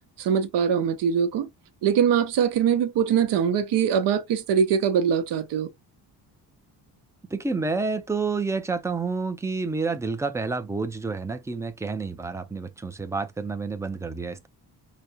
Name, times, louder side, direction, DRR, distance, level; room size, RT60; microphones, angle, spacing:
voice 1, 0.2-1.5 1.8-5.7, right 7 dB, 80° right, 0.8 m, -22 dB
voice 2, 7.3-14.5, right 4 dB, 10° right, 0.4 m, -29 dB
4.9 x 2.1 x 2.7 m
cardioid pair, 145°, 41 cm